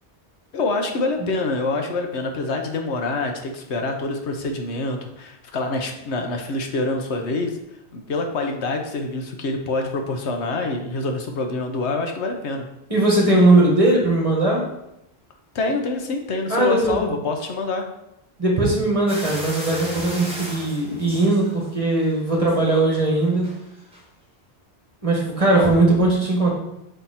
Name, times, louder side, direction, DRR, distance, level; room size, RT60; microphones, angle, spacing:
voice 1, 0.5-7.6 7.9-12.6 15.5-17.8 25.6-25.7, left 2 dB, 80° left, 4 dB, 1.1 m, -26 dB
voice 2, 12.9-14.6 16.5-17.1 18.4-23.5 25.0-26.5, right 2 dB, 30° right, -2 dB, 1.6 m, -19 dB
sound 1, 19.1-21.9 22.3-22.8 23.4-23.6 23.9-24.0, equal, 5° right, 1.4 m, -35 dB
5.7 x 4.4 x 4.2 m, 0.83 s
omnidirectional pair, 1.1 m